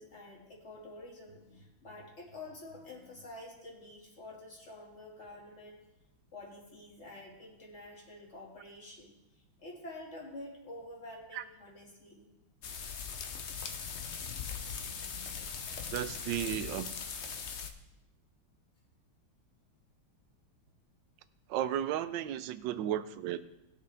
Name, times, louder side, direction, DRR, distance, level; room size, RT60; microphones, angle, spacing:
voice 1, 0.0-5.8 6.3-12.3 14.7-16.2, left 2 dB, 35° left, -2 dB, 2.4 m, -49 dB
sound 1, 12.6-17.7, left 6 dB, 85° left, 0.6 m, -40 dB
voice 2, 15.9-16.9 21.5-23.4, right 11 dB, 70° right, 12 dB, 1.2 m, -34 dB
19.0 x 6.6 x 3.4 m, 0.93 s
omnidirectional pair, 2.3 m